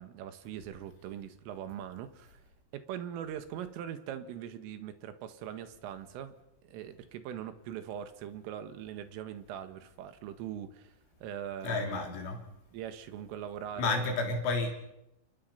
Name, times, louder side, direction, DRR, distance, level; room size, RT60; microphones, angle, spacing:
voice 1, 0.0-2.4 2.7-6.4 6.6-10.9 11.2-12.1 12.7-14.1, right 9 dB, 90° right, 9 dB, 4.1 m, -41 dB
voice 2, 11.6-12.4 13.8-14.7, left 3 dB, 75° left, 2 dB, 5.9 m, -31 dB
29.5 x 21.5 x 5.7 m, 0.86 s
omnidirectional pair, 5.7 m